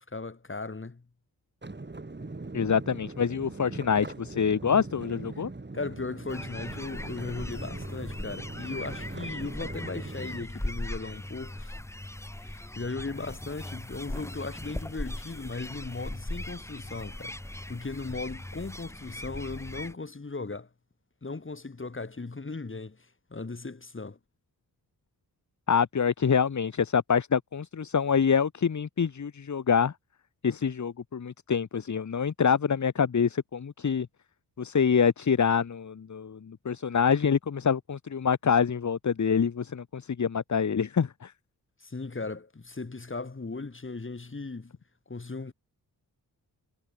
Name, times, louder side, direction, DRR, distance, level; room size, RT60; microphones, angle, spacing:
voice 1, 0.1-1.0 5.3-5.4 5.7-11.8 12.4-20.7 21.2-24.2 41.8-44.7 45.1-45.5, left 3 dB, 30° left, 4.3 m, -37 dB
sound 1, 1.6-10.5, right 3 dB, 30° right, 7.3 m, -41 dB
voice 2, 2.5-5.5 25.7-29.9 30.4-34.1 34.6-41.3, left 6 dB, 50° left, 1.5 m, -26 dB
sound 2, 6.3-19.9, left 1 dB, 5° left, 1.2 m, -39 dB
cardioid pair, 70°, 38 cm